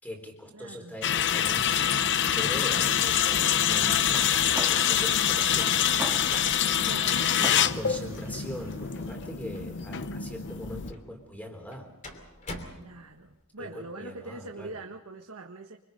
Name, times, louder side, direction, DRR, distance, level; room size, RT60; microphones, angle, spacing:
voice 1, 0.0-6.6 7.6-11.9 13.6-14.8, equal, 5° left, 3 dB, 3.8 m, -41 dB
voice 2, 0.5-0.9 6.8-8.2 12.8-15.8, right 2 dB, 75° right, 3 dB, 1.3 m, -43 dB
sound 1, 1.0-10.9, left 9 dB, 55° left, 0.7 m, -25 dB
sound 2, 3.7-9.1, right 1 dB, 10° right, 1.9 m, -41 dB
sound 3, 6.0-13.4, left 1 dB, 35° left, 2.9 m, -48 dB
25.0 x 25.0 x 5.4 m, 0.94 s
head